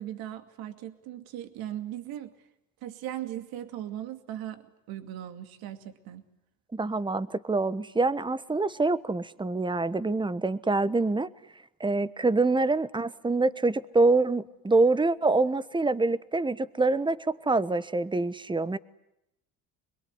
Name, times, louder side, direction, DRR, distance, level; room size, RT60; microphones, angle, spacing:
voice 1, 0.0-2.3 2.8-6.2, right 12 dB, 65° right, 8 dB, 2.6 m, -38 dB
voice 2, 6.7-11.3 11.8-18.8, right 3 dB, 10° right, 15 dB, 1.3 m, -25 dB
26.0 x 22.0 x 9.8 m, 0.85 s
hypercardioid pair, 70°, 39 cm